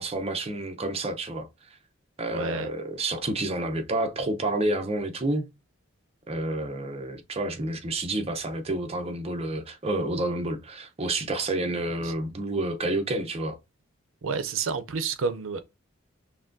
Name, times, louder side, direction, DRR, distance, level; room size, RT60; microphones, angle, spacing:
voice 1, 0.0-1.5 2.2-5.5 6.3-13.6, right 2 dB, 30° right, 0.7 m, -29 dB
voice 2, 2.3-2.7 12.0-12.1 14.2-15.6, right 5 dB, 75° right, 0.5 m, -30 dB
5.9 x 2.2 x 2.6 m
head